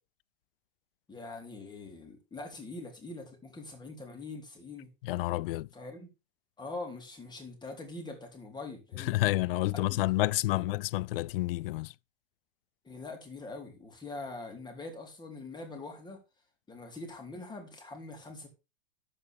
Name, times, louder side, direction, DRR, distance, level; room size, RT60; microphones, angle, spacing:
voice 1, 1.1-4.9 5.7-6.1 6.6-9.2 9.7-10.7 12.8-16.2 16.7-18.5, left 3 dB, 15° left, 3.1 m, -43 dB
voice 2, 5.0-5.7 9.0-11.9, left 18 dB, 65° left, 0.5 m, -29 dB
12.5 x 4.5 x 5.0 m
hypercardioid pair, 115°, 31 cm